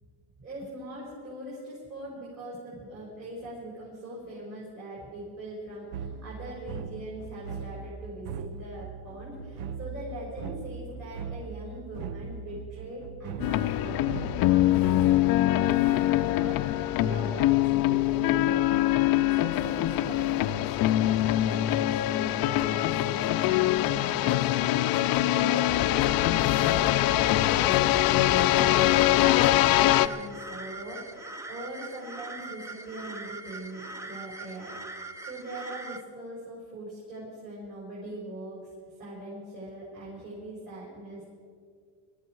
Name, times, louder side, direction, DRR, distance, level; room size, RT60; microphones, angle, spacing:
voice 1, 0.4-18.8 19.3-35.0 35.2-41.4, right 1 dB, 40° right, -7 dB, 5.4 m, -41 dB
sound 1, 5.9-15.4, right 5 dB, 90° right, 0.9 m, -40 dB
sound 2, 13.4-30.1, left 14 dB, 50° left, 0.5 m, -23 dB
sound 3, 28.7-36.0, right 2 dB, 5° right, 0.4 m, -41 dB
22.0 x 13.5 x 4.7 m, 2.1 s
cardioid pair, 145°, 49 cm